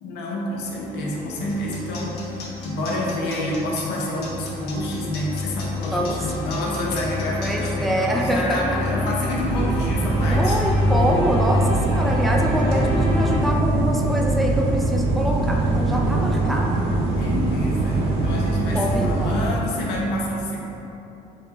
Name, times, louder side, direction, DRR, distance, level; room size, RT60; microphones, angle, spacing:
voice 1, 0.0-10.6 17.2-20.6, left 1 dB, 90° left, -4 dB, 0.7 m, -28 dB
sound 1, 0.5-13.4, left 3 dB, 30° left, 1.1 m, -29 dB
sound 2, 1.5-7.7, left 4 dB, 70° left, 1.0 m, -40 dB
voice 2, 5.9-6.4 7.4-8.8 10.3-16.8 18.7-19.6, equal, ahead, -1 dB, 0.3 m, -25 dB
sound 3, 9.3-19.5, right 2 dB, 80° right, 0.7 m, -22 dB
4.9 x 2.1 x 3.2 m, 2.9 s
cardioid pair, 110°, 17 cm